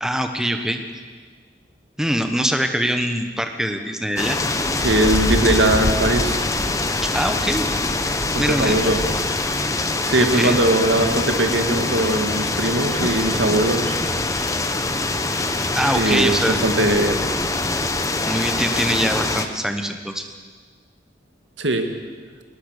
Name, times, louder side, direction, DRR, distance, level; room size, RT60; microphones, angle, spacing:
voice 1, 0.0-0.8 2.0-4.4 7.1-7.7 8.4-8.7 10.2-10.6 15.7-16.6 18.2-20.3, equal, 5° right, 6 dB, 1.2 m, -23 dB
sound 1, 4.2-19.5, left 2 dB, 20° left, 1.1 m, -23 dB
voice 2, 4.8-6.4 8.3-9.0 10.0-14.0 16.0-17.3 21.6-21.9, right 1 dB, 90° right, 5 dB, 2.2 m, -20 dB
21.5 x 20.5 x 6.7 m, 1.5 s
head